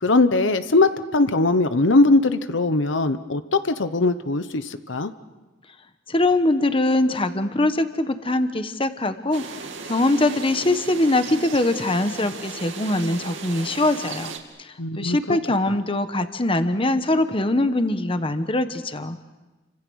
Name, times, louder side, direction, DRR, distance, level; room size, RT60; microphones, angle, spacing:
voice 1, 0.0-5.1 14.8-15.4, left 2 dB, 80° left, 11 dB, 1.0 m, -20 dB
voice 2, 6.1-9.4 9.9-14.3 15.0-19.2, left 2 dB, 30° left, 10 dB, 1.2 m, -22 dB
sound 1, 9.3-14.4, right 4 dB, 80° right, 2.6 m, -36 dB
30.0 x 26.0 x 6.4 m, 1.2 s
head